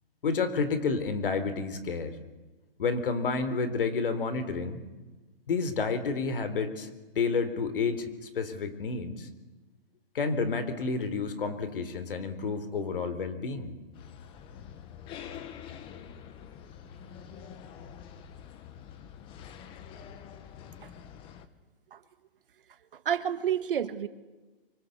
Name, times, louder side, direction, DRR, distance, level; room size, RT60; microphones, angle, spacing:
voice 1, 0.2-2.2 2.8-4.8 5.5-6.9 7.2-9.3 10.1-13.7, left 4 dB, 65° left, 12 dB, 3.9 m, -30 dB
sound 1, 13.9-21.5, left 8 dB, 15° left, 1.3 m, -46 dB
voice 2, 22.9-24.1, right 9 dB, 60° right, 11 dB, 2.0 m, -30 dB
25.5 x 25.0 x 8.4 m, 1.2 s
hypercardioid pair, 160°, 30 cm